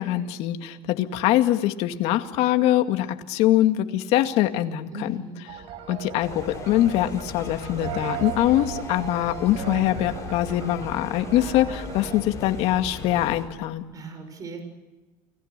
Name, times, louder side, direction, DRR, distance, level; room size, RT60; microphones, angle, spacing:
voice 1, 0.0-5.2 5.9-13.8, left 13 dB, 65° left, 7 dB, 2.2 m, -23 dB
voice 2, 4.9-5.5 13.9-14.6, right 2 dB, 30° right, 6 dB, 6.3 m, -37 dB
sound 1, 5.5-12.2, right 8 dB, 55° right, 5.2 m, -37 dB
sound 2, 6.2-13.5, left 4 dB, 25° left, 6.3 m, -38 dB
29.5 x 20.0 x 6.8 m, 1.2 s
cardioid pair, 130°, 11 cm